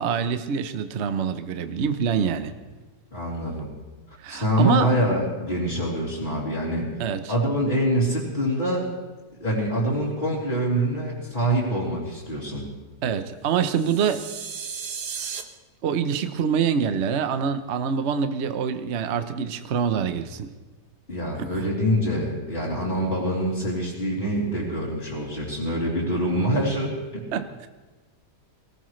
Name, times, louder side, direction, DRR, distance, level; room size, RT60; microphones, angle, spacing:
voice 1, 0.0-2.5 4.2-4.9 7.0-7.3 13.0-14.3 15.8-20.5 27.3-27.7, right 7 dB, 50° right, 9 dB, 0.9 m, -25 dB
voice 2, 3.1-3.7 4.3-6.9 7.3-8.9 9.4-12.7 21.1-27.2, equal, 30° left, -9 dB, 3.7 m, -25 dB
sound 1, 13.6-15.4, right 6 dB, 75° right, 1.6 m, -35 dB
23.5 x 18.0 x 3.2 m, 1.2 s
omnidirectional pair, 1.8 m